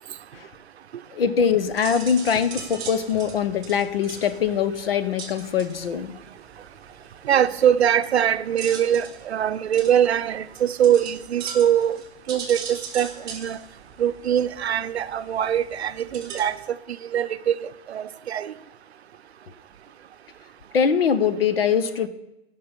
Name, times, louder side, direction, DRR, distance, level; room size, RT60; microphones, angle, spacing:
voice 1, 1.1-6.1 20.7-22.1, left 7 dB, 60° left, 0.9 m, -22 dB
sound 1, 1.5-16.6, right 6 dB, 10° right, 1.2 m, -41 dB
voice 2, 7.3-12.0 12.3-13.6 14.0-16.6 17.0-18.5, right 9 dB, 80° right, 0.7 m, -22 dB
16.5 x 5.7 x 5.3 m
hypercardioid pair, 160°, 32 cm